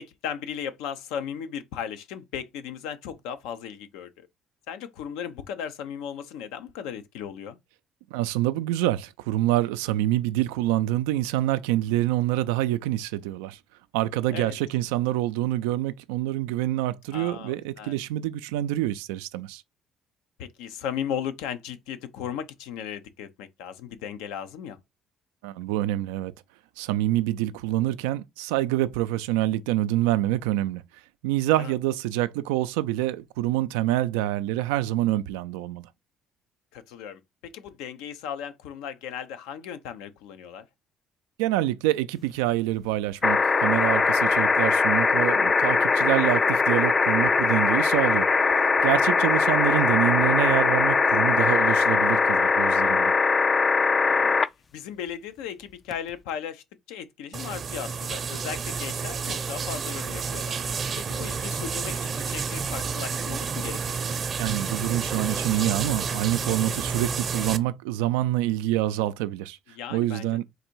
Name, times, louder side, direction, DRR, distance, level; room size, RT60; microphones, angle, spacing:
voice 1, 0.0-4.3 4.7-7.6 14.3-14.6 17.1-18.0 20.4-24.8 31.6-31.7 36.7-40.7 46.0-46.5 49.4-49.5 53.9-54.4 54.7-60.6 61.0-64.0 69.7-70.4, left 8 dB, 85° left, 0.6 m, -36 dB
voice 2, 8.1-13.6 13.9-19.6 25.4-26.3 26.8-30.8 31.2-35.9 41.4-48.3 48.8-53.1 64.4-69.6 69.9-70.4, right 14 dB, 90° right, 0.3 m, -26 dB
sound 1, 43.2-54.5 55.9-56.0, left 4 dB, 35° left, 0.3 m, -21 dB
sound 2, 57.3-67.6, right 5 dB, 45° right, 0.7 m, -30 dB
3.9 x 2.6 x 4.4 m
supercardioid pair, 70°, 0 cm